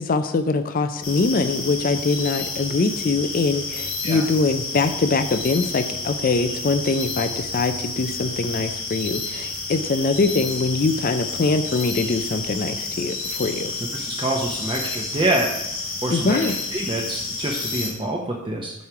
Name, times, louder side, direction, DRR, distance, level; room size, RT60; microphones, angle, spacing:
voice 1, 0.0-13.7 16.1-16.6, left 3 dB, 45° left, 9 dB, 0.4 m, -23 dB
sound 1, 1.0-17.9, left 3 dB, 85° left, 2.4 m, -30 dB
voice 2, 13.9-15.5 16.0-18.7, right 1 dB, 25° right, -1 dB, 0.7 m, -26 dB
9.3 x 3.2 x 5.8 m, 0.84 s
head